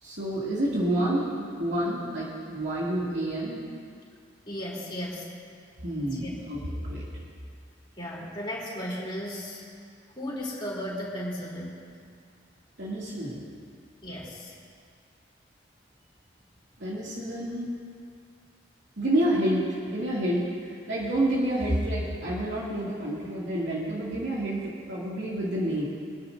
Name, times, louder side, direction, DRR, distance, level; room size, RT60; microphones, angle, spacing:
voice 1, 0.0-3.6 5.8-7.1 12.8-13.4 16.8-17.7 19.0-25.9, right 1 dB, 75° right, -7 dB, 2.6 m, -29 dB
voice 2, 4.5-5.3 6.0-6.3 8.0-9.6 10.2-11.9 14.0-14.6, equal, 25° left, -6 dB, 3.5 m, -35 dB
24.5 x 10.0 x 2.7 m, 2.2 s
head